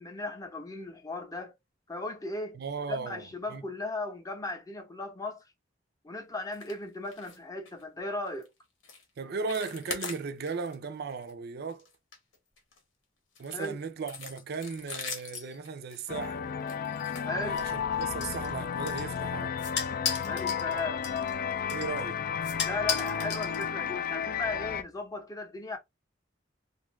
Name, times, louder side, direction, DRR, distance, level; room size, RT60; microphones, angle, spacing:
voice 1, 0.0-1.6 1.9-2.6 2.9-5.4 6.0-8.5 13.5-13.8 17.2-17.6 20.2-21.0 22.6-25.8, left 2 dB, 20° left, 0.7 m, -36 dB
voice 2, 2.5-3.6 9.2-11.9 13.4-16.5 17.3-19.6 21.7-22.2, right 5 dB, 55° right, 0.4 m, -36 dB
sound 1, 6.5-6.8 7.0-7.4 7.6-7.8 8.3-8.5 8.8-9.0 9.3-10.7 11.1-11.3 11.7-12.8 13.3-17.9 18.7-18.8 19.2-19.3 19.7-19.8, left 4 dB, 85° left, 1.0 m, -42 dB
sound 2, 16.1-24.8, left 7 dB, 45° left, 0.3 m, -33 dB
sound 3, 17.6-24.0, left 7 dB, 65° left, 0.7 m, -38 dB
2.6 x 2.4 x 3.0 m
head